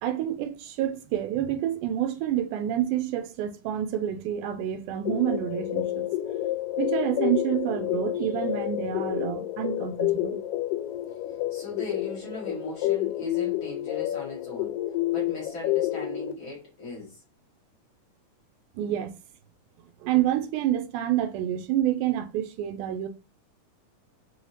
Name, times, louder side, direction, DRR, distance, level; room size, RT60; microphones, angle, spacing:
voice 1, 0.0-6.1 6.8-10.4 18.8-19.2 20.0-23.1, right 11 dB, 80° right, 2.0 m, -28 dB
sound 1, 5.1-16.3, left 14 dB, 90° left, 2.1 m, -29 dB
voice 2, 11.5-14.7 15.1-17.2, left 3 dB, 50° left, 1.9 m, -38 dB
5.6 x 2.8 x 2.8 m
omnidirectional pair, 3.7 m